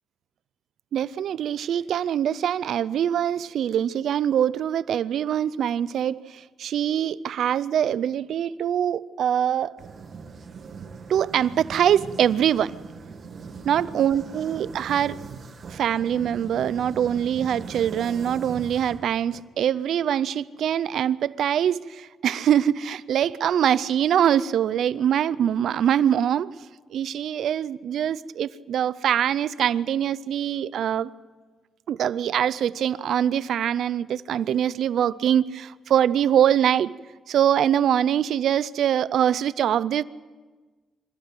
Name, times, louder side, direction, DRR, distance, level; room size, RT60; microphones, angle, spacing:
voice 1, 0.9-9.8 11.1-12.8 13.6-15.2 15.7-26.5 26.9-31.1 31.9-36.9 37.3-40.0, right 9 dB, 75° right, 0.6 m, -23 dB
sound 1, 9.8-19.4, right 5 dB, 55° right, 2.0 m, -40 dB
26.0 x 13.5 x 9.1 m
cardioid pair, 65°, 0 cm